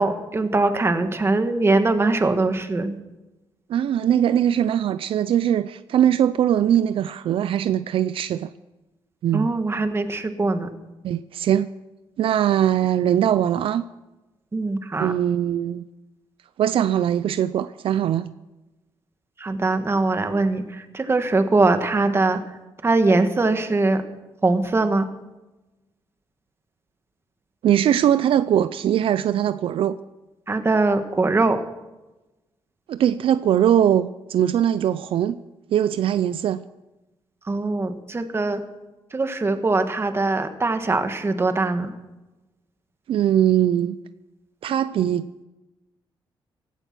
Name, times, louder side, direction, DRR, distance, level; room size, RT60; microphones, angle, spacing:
voice 1, 0.0-3.0 9.3-10.7 14.5-15.1 19.4-22.4 22.8-24.0 24.4-25.1 30.5-31.6 37.5-38.6 39.1-41.9, right 3 dB, 25° right, 1.6 m, -22 dB
voice 2, 3.7-8.5 9.2-9.5 11.0-11.7 12.2-13.8 15.0-15.9 16.6-18.3 27.6-30.0 32.9-35.4 35.7-36.6 43.1-44.0 44.6-45.3, right 10 dB, 75° right, 0.5 m, -21 dB
16.5 x 12.5 x 6.1 m
cardioid pair, 100°, 9 cm